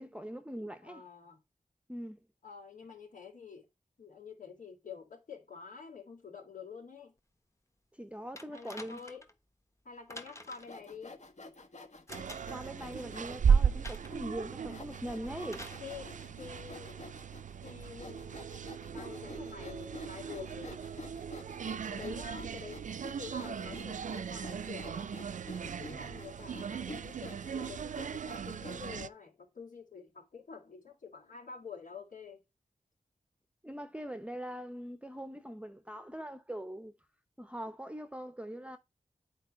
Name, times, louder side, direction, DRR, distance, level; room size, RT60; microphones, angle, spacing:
voice 1, 0.0-1.0 1.9-2.2 8.0-9.0 12.5-15.7 33.6-36.9 37.4-38.8, equal, 10° right, 0.7 m, -42 dB
voice 2, 0.8-1.4 2.4-3.7 4.0-7.1 8.5-9.2 9.8-11.2 15.8-17.0 17.6-18.3 18.9-20.8 21.9-22.8 23.2-25.1 25.6-32.4, left 6 dB, 80° left, 3.0 m, -48 dB
sound 1, 8.4-9.3 10.1-10.8 12.1-12.7 13.8-14.2 15.5-15.8 16.9-17.0, left 2 dB, 20° left, 1.2 m, -48 dB
Sawing, 10.6-13.5 14.1-14.2 14.7-29.0, left 2 dB, 60° left, 1.3 m, -50 dB
sound 2, 12.1-29.1, right 7 dB, 70° right, 0.4 m, -36 dB
8.6 x 4.6 x 4.4 m
wide cardioid pair, 95°, 14 cm